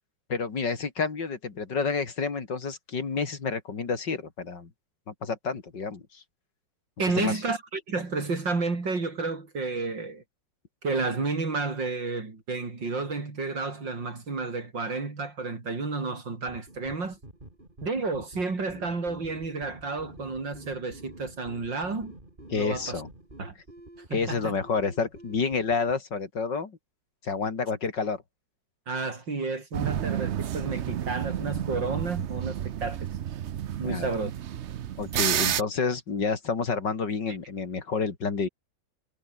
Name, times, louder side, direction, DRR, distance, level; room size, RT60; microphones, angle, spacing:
voice 1, 0.3-4.7 5.1-6.2 7.2-7.4 22.5-23.1 24.1-26.8 27.2-28.2 33.8-34.1 35.0-38.5, left 5 dB, 70° left, 3.5 m, -29 dB
voice 2, 7.0-10.2 10.8-17.2 17.8-22.1 22.5-23.0 23.4-23.6 24.1-24.5 28.9-33.1 33.8-34.3, right 3 dB, 80° right, 5.0 m, -31 dB
sound 1, 16.5-26.0, right 1 dB, 25° right, 5.4 m, -48 dB
sound 2, 29.7-35.6, right 10 dB, 60° right, 0.7 m, -31 dB
omnidirectional pair, 2.0 m